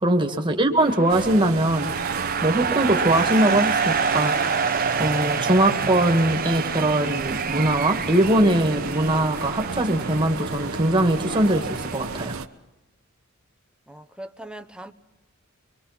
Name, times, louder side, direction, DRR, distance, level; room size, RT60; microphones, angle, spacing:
voice 1, 0.0-4.6 5.0-12.4, right 1 dB, 20° right, 5 dB, 1.8 m, -21 dB
sound 1, 0.8-12.3, right 6 dB, 45° right, 1.1 m, -28 dB
sound 2, 1.1-12.5, right 3 dB, 75° right, 1.0 m, -33 dB
sound 3, 3.1-6.0, left 2 dB, 65° left, 5.8 m, -41 dB
voice 2, 13.9-14.9, right 1 dB, 5° right, 7 dB, 0.8 m, -40 dB
26.0 x 23.0 x 5.9 m, 1.0 s
head